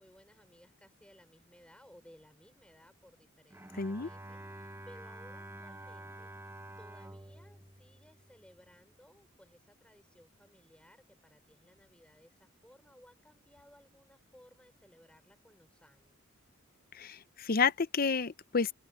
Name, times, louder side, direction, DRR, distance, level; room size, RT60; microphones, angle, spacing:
voice 1, 0.0-6.5 6.8-16.2, equal, 5° left, 5.8 m, -60 dB
Bowed string instrument, 3.5-8.8, right 1 dB, 10° right, 1.4 m, -49 dB
voice 2, 3.8-4.1 17.0-18.7, left 5 dB, 45° left, 0.8 m, -30 dB
open air
head